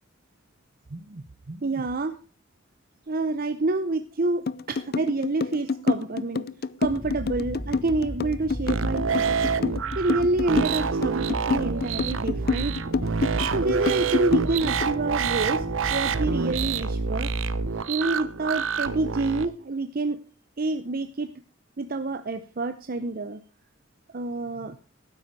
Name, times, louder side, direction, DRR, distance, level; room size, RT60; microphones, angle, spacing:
voice 1, 0.9-2.1 3.1-6.5 6.8-9.4 10.0-12.7 13.5-15.7 15.9-17.3 17.9-20.2 20.6-21.3 21.8-23.4 24.1-24.8, right 2 dB, 50° right, 9 dB, 0.7 m, -28 dB
sound 1, 4.5-15.0, left 4 dB, 50° left, 0.5 m, -28 dB
sound 2, 6.8-16.7, equal, ahead, 1.3 m, -36 dB
sound 3, 8.7-19.5, right 5 dB, 80° right, 0.8 m, -27 dB
12.5 x 9.5 x 4.7 m, 0.36 s
head